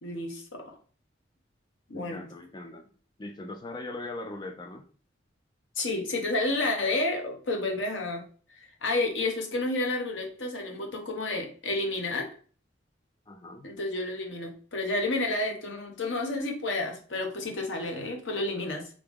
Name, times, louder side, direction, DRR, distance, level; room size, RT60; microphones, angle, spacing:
voice 1, 0.0-0.7 1.9-2.2 5.8-8.2 8.6-12.3 13.6-18.9, left 2 dB, 80° left, 2 dB, 1.0 m, -30 dB
voice 2, 1.9-2.9 3.2-4.9 13.3-13.7, left 2 dB, 25° left, 5 dB, 0.4 m, -40 dB
3.7 x 3.5 x 3.5 m, 0.41 s
head